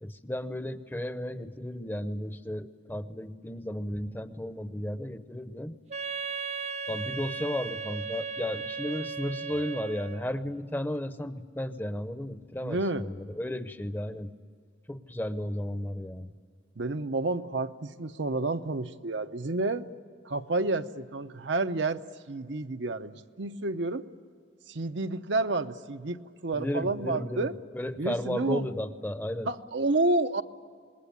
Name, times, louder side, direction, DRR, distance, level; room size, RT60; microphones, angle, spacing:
voice 1, 0.0-5.8 6.9-14.3 14.9-16.3 26.5-29.5, left 1 dB, 10° left, 11 dB, 0.7 m, -34 dB
Wind instrument woodwind instrument, 5.9-10.3, right 5 dB, 35° right, 0.6 m, -36 dB
voice 2, 12.6-13.1 16.8-19.9 20.3-24.0 24.7-26.2 26.4-27.5 28.0-28.7 29.5-30.4, right 2 dB, 80° right, 8 dB, 0.9 m, -30 dB
26.5 x 21.0 x 8.7 m, 2.1 s
head